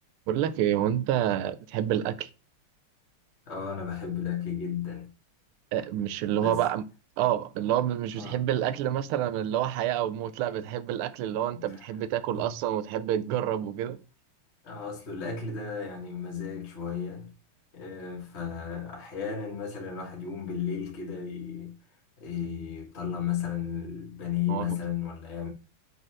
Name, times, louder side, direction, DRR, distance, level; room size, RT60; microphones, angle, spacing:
voice 1, 0.3-2.3 5.7-6.8 7.2-14.0 24.5-24.7, right 11 dB, 80° right, 1.4 m, -28 dB
voice 2, 3.5-5.1 6.4-6.7 8.2-8.4 11.5-11.9 12.4-12.5 14.6-17.3 17.7-21.8 22.2-25.5, left 7 dB, 30° left, 1.7 m, -34 dB
5.0 x 4.2 x 5.8 m
omnidirectional pair, 2.4 m